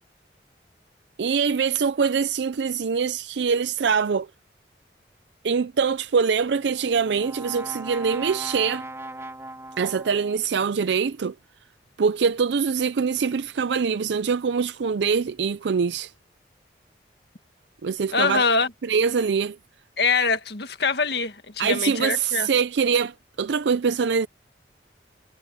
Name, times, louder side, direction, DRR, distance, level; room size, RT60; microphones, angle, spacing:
voice 1, 1.2-4.3 5.4-8.9 9.8-11.3 12.0-16.1 17.8-18.4 18.8-19.6 21.6-24.3, right 6 dB, 80° right, 0.4 m, -23 dB
Brass instrument, 6.5-10.5, right 1 dB, 15° right, 2.9 m, -38 dB
voice 2, 18.1-18.7 20.0-22.5, left 4 dB, 70° left, 1.8 m, -24 dB
head